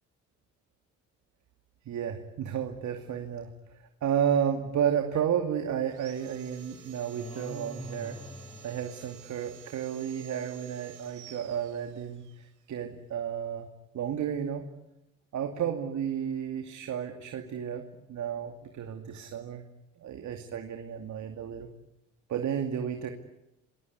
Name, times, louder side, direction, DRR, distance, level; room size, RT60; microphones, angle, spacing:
voice 1, 1.9-8.2 8.6-13.7 13.9-14.7 15.3-19.6 20.0-21.7 22.3-23.1, right 8 dB, 70° right, 5 dB, 2.7 m, -32 dB
Sawing, 5.9-12.4, right 9 dB, 90° right, 3.8 m, -51 dB
sound 1, 7.1-9.7, left 1 dB, 20° left, 6.6 m, -44 dB
27.0 x 21.5 x 9.6 m, 0.88 s
cardioid pair, 90°, 30 cm